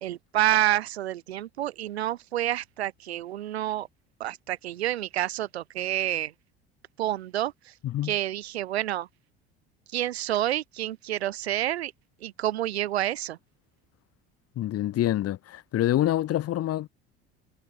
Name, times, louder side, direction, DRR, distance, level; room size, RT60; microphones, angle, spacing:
voice 1, 0.0-3.9 4.2-6.3 7.0-7.7 8.0-9.1 9.9-11.9 12.2-13.4, right 13 dB, 80° right, 1.3 m, -28 dB
voice 2, 7.8-8.1 14.5-16.9, left 13 dB, 50° left, 3.5 m, -26 dB
figure-of-eight pair, 65°, 32 cm